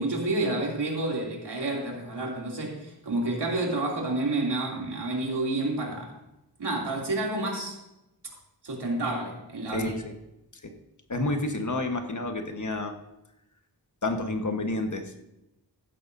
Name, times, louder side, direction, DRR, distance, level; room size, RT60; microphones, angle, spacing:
voice 1, 0.0-6.1 6.6-7.7 8.6-10.0, right 2 dB, 75° right, -2 dB, 3.0 m, -29 dB
voice 2, 9.7-10.1 11.1-12.9 14.0-15.0, left 2 dB, 45° left, 5 dB, 1.4 m, -29 dB
15.0 x 12.0 x 2.7 m, 0.89 s
wide cardioid pair, 75°, 41 cm